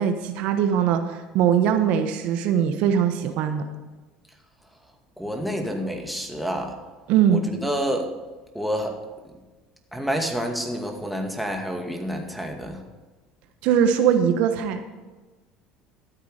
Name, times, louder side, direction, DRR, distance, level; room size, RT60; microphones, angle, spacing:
voice 1, 0.0-3.6 7.1-7.4 13.6-14.9, right 8 dB, 65° right, 7 dB, 1.0 m, -21 dB
voice 2, 5.2-6.8 7.3-8.1 8.5-8.9 9.9-12.8, equal, ahead, 2 dB, 2.1 m, -28 dB
13.0 x 8.2 x 5.0 m, 1.3 s
supercardioid pair, 90°, 2 cm